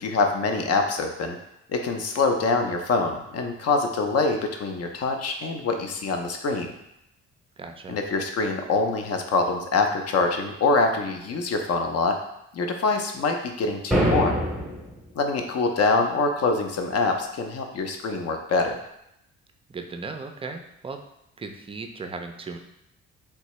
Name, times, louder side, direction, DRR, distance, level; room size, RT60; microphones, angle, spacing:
voice 1, 0.0-1.4 1.7-6.7 7.9-12.2 12.5-14.4 15.1-18.8, left 3 dB, 55° left, 4 dB, 0.6 m, -25 dB
voice 2, 7.6-8.0 19.7-21.0 21.4-22.6, right 4 dB, 20° right, 5 dB, 0.4 m, -36 dB
sound 1, 13.9-14.9, equal, ahead, 0.7 m, -23 dB
3.3 x 2.7 x 3.0 m, 0.82 s
cardioid pair, 90°, 30 cm